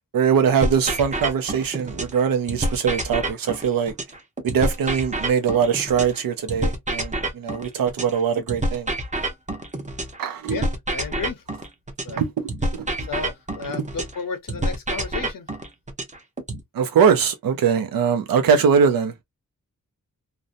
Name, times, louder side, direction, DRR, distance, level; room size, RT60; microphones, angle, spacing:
voice 1, 0.1-3.9 4.4-8.9 10.2-10.7 12.2-13.1 16.7-19.1, right 7 dB, 85° right, 0.5 m, -22 dB
sound 1, 0.6-2.2 2.5-6.2 6.5-10.2 10.5-14.2 14.5-16.6, right 1 dB, 20° right, 0.7 m, -27 dB
voice 2, 10.5-11.4 12.0-12.2 13.0-15.5, left 5 dB, 75° left, 0.6 m, -33 dB
2.6 x 2.0 x 2.5 m
wide cardioid pair, 105°, 34 cm